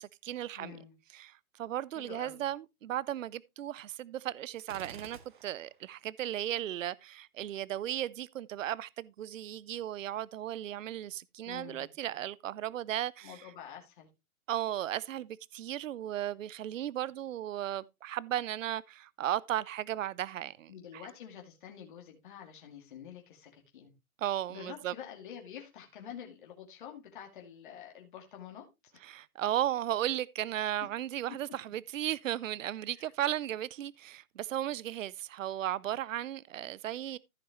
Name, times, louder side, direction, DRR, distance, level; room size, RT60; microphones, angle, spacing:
voice 1, 0.0-0.8 1.1-13.4 14.5-20.7 24.2-24.9 29.0-37.2, right 12 dB, 60° right, 0.5 m, -35 dB
voice 2, 0.6-0.9 2.0-2.4 11.4-11.9 13.2-14.1 20.7-23.9 24.5-28.7 31.4-31.5 33.0-33.1, left 9 dB, 35° left, 2.3 m, -48 dB
Gunshot gunfire, 4.6-5.8, right 6 dB, 35° right, 0.8 m, -51 dB
14.5 x 6.2 x 3.0 m
hypercardioid pair, 175°, 44 cm